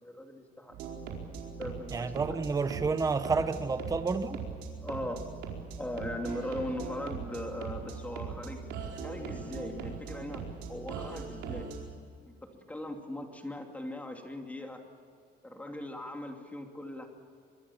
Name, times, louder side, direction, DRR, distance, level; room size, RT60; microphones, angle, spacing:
voice 1, 0.0-0.9 1.6-2.1 4.8-5.3 5.8-8.6 9.0-11.7 12.2-14.8 15.4-17.1, left 1 dB, 10° left, 3 dB, 2.7 m, -39 dB
sound 1, 0.7-12.0, right 5 dB, 85° right, 4.7 m, -40 dB
voice 2, 1.9-4.4, right 4 dB, 20° right, 10 dB, 1.1 m, -30 dB
25.0 x 22.0 x 7.2 m, 2.3 s
cardioid pair, 135°, 18 cm